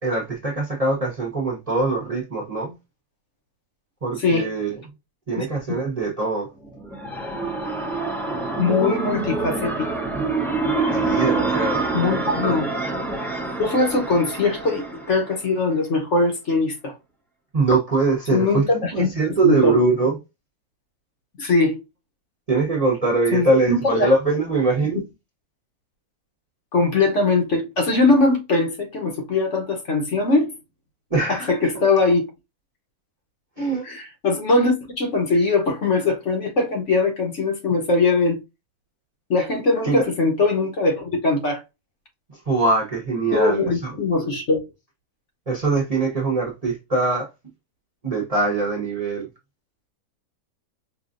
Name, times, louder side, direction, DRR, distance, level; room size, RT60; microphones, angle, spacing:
voice 1, 0.0-2.7 4.0-4.7 5.3-6.5 10.9-11.8 12.4-12.6 17.5-20.2 22.5-25.0 31.1-31.5 33.6-33.8 39.8-40.0 42.5-43.9 45.5-47.3 48.0-49.3, right 3 dB, 30° right, 1.0 m, -22 dB
voice 2, 4.2-4.5 5.3-5.5 8.6-10.0 11.9-12.7 13.6-17.0 18.3-19.8 21.4-21.8 23.3-24.1 26.7-30.5 31.3-32.3 33.8-38.4 39.3-41.6 43.3-44.6, left 3 dB, 55° left, 1.2 m, -21 dB
sound 1, 6.6-15.5, right 3 dB, ahead, 0.5 m, -26 dB
5.0 x 2.5 x 2.5 m
omnidirectional pair, 1.6 m